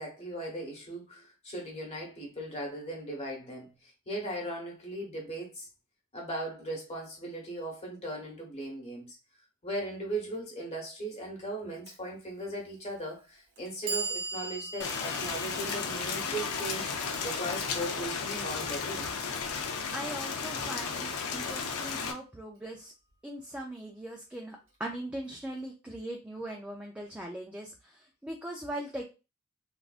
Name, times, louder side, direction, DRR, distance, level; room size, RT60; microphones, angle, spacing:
voice 1, 0.0-5.7 6.1-9.2 9.6-16.9 17.2-19.2, right 1 dB, 30° left, 1.1 m, -38 dB
Clock, 11.9-12.0 12.9-13.0 13.6-19.6, right 4 dB, 65° right, 0.8 m, -41 dB
Rain, 14.8-22.1, left 5 dB, 80° left, 0.6 m, -34 dB
voice 2, 19.9-22.9 23.2-29.0, right 1 dB, 5° right, 0.4 m, -40 dB
3.4 x 2.5 x 2.4 m
head